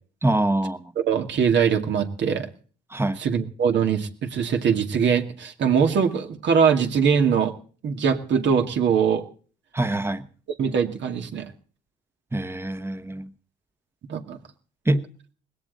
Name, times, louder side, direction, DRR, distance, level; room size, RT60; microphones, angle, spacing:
voice 1, 0.2-0.9 2.9-3.2 9.7-10.3 12.3-13.3 14.8-15.1, right 1 dB, 10° right, 1.3 m, -24 dB
voice 2, 1.0-2.5 3.2-7.5 7.8-9.2 10.6-11.5 14.1-14.4, right 7 dB, 65° right, 2.4 m, -22 dB
20.0 x 17.0 x 4.1 m
cardioid pair, 90°, 20 cm